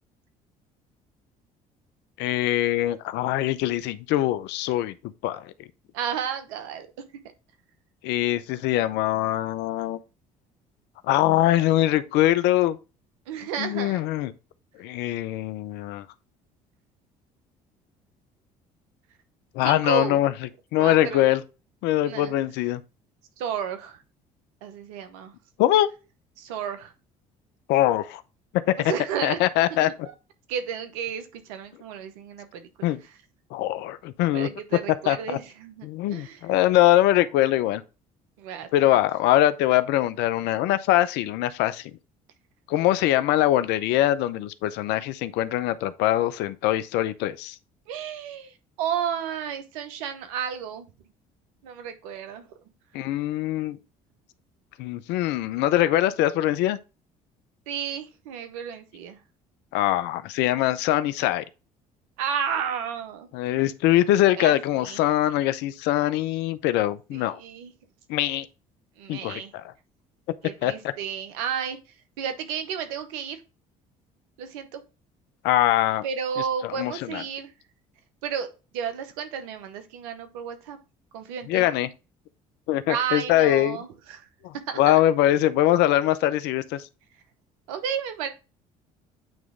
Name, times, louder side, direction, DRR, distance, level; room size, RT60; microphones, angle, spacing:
voice 1, 2.2-5.0 5.2-5.5 8.0-10.0 11.1-12.8 13.6-14.3 14.8-16.0 19.5-20.3 20.7-21.4 21.8-22.8 25.6-25.9 27.7-28.2 28.5-28.9 29.2-30.1 32.8-33.0 33.5-34.5 35.1-35.4 35.8-37.8 38.7-41.9 42.7-47.6 52.9-53.8 54.8-56.8 59.7-61.4 63.3-67.4 68.1-68.5 69.1-69.7 70.6-70.9 75.4-76.0 76.6-77.2 81.5-81.9 82.7-83.8 84.4-86.8, left 14 dB, 70° left, 0.6 m, -23 dB
voice 2, 5.9-6.9 13.3-14.0 19.6-20.2 20.8-21.3 22.0-22.3 23.4-24.0 24.6-25.3 26.4-26.9 28.8-29.4 29.7-30.1 30.5-32.9 34.3-36.5 38.4-38.7 47.9-50.9 51.6-52.5 57.7-59.2 62.2-63.3 64.4-64.6 64.8-65.0 67.1-67.7 69.0-69.5 70.4-71.8 72.2-73.4 74.4-74.8 76.0-77.5 78.2-80.8 81.1-81.7 82.9-84.3 84.7-85.0 87.7-88.3, right 7 dB, 80° right, 0.9 m, -32 dB
8.9 x 3.1 x 3.6 m
hypercardioid pair, 60°, 18 cm